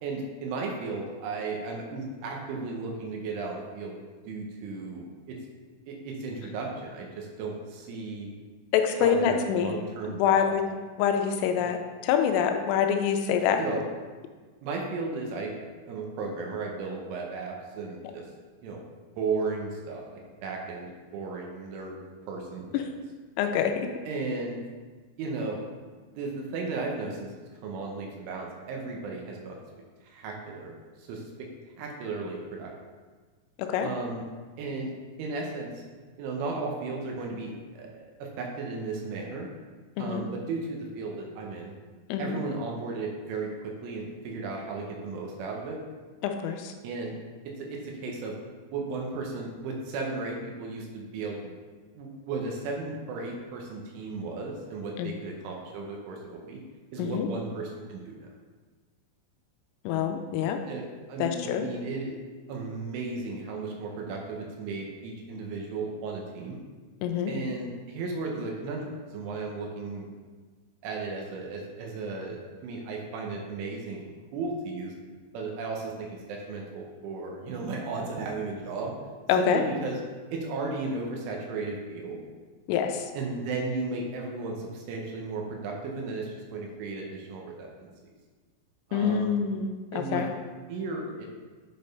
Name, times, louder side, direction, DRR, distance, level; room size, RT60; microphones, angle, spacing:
voice 1, 0.0-5.4 5.9-8.3 8.9-10.5 11.7-11.8 13.6-13.8 14.6-15.5 15.8-18.3 18.6-18.8 19.2-22.9 24.0-24.6 25.2-25.6 26.1-27.3 27.6-29.6 30.0-30.7 31.0-31.5 31.8-32.7 33.8-34.2 34.6-34.9 35.2-35.7 36.2-39.5 40.0-41.7 42.2-45.8 46.8-47.2 47.4-48.4 48.7-51.5 52.0-56.6 56.9-58.3 60.7-62.2 62.5-66.6 67.3-70.1 70.8-74.9 75.3-78.9 79.3-80.0 80.3-82.2 83.1-87.9 88.9-89.4 89.9-90.3 90.7-91.3, right 3 dB, 75° right, 0 dB, 3.2 m, -35 dB
voice 2, 8.7-9.8 10.1-10.6 11.0-13.6 22.7-22.8 23.4-23.9 33.6-33.9 40.0-40.3 42.1-42.4 46.2-46.7 55.0-55.1 57.0-57.3 59.9-60.6 61.2-61.7 67.0-67.3 79.3-79.6 82.7-83.0 88.9-90.3, left 8 dB, 85° left, 5 dB, 3.1 m, -26 dB
8.7 x 4.3 x 5.2 m, 1.4 s
omnidirectional pair, 6.0 m